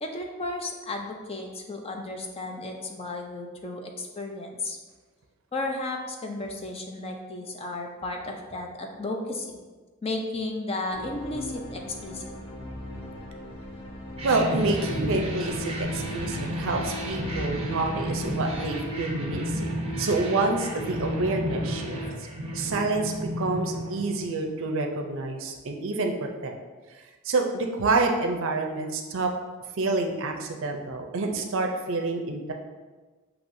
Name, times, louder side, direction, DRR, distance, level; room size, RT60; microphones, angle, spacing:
voice 1, 0.0-4.8 5.5-9.6 10.0-12.3, left 2 dB, 25° left, 2 dB, 0.5 m, -34 dB
sound 1, 10.9-19.3, left 1 dB, 55° left, 1.0 m, -40 dB
sound 2, 14.2-24.7, equal, 25° right, 0.7 m, -32 dB
voice 2, 14.2-19.7 20.0-22.0 22.5-26.6 27.2-29.3 29.8-32.5, right 3 dB, 60° right, 3 dB, 0.5 m, -28 dB
7.1 x 2.9 x 2.6 m, 1.3 s
head